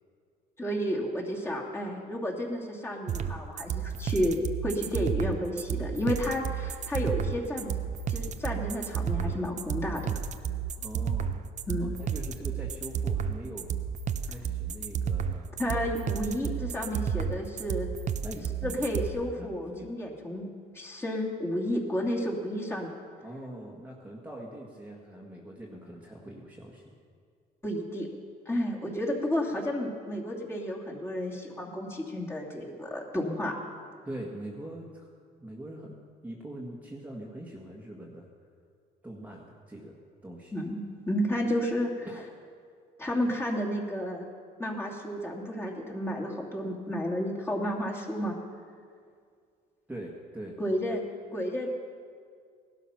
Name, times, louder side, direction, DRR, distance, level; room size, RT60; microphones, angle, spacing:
voice 1, 0.6-7.7 8.1-10.2 11.7-12.0 15.6-17.9 18.6-20.5 20.7-22.9 27.6-28.1 28.5-33.5 40.5-42.1 43.0-44.3 44.6-48.3 50.6-51.0 51.3-51.7, equal, 15° left, -2 dB, 2.7 m, -31 dB
sound 1, 3.1-19.1, right 7 dB, 45° right, 0.7 m, -31 dB
voice 2, 10.8-13.7 14.2-15.6 18.2-18.9 19.4-19.9 23.2-26.9 34.0-35.1 35.4-36.0 36.2-38.3 39.0-40.0 40.2-40.6 42.1-42.3 49.9-50.6, right 1 dB, 10° right, -2 dB, 1.7 m, -43 dB
17.5 x 12.5 x 5.9 m, 2.2 s
cardioid pair, 110°, 17 cm